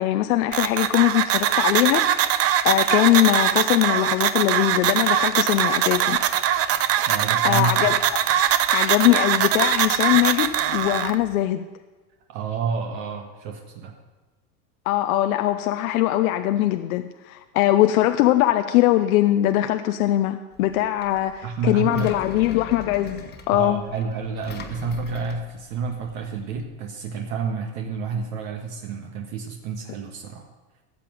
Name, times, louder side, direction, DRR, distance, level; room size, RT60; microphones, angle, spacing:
voice 1, 0.0-6.2 7.4-8.2 8.7-11.7 14.9-23.8, left 14 dB, 75° left, 8 dB, 0.8 m, -21 dB
sound 1, 0.5-11.1, right 10 dB, 35° right, 0.7 m, -22 dB
voice 2, 7.1-7.9 12.3-13.9 21.4-22.2 23.5-30.5, right 5 dB, 60° right, 3 dB, 1.6 m, -29 dB
Engine, 20.5-26.6, left 5 dB, 25° left, 1.4 m, -42 dB
14.5 x 7.6 x 7.8 m, 1.2 s
supercardioid pair, 130°, 43 cm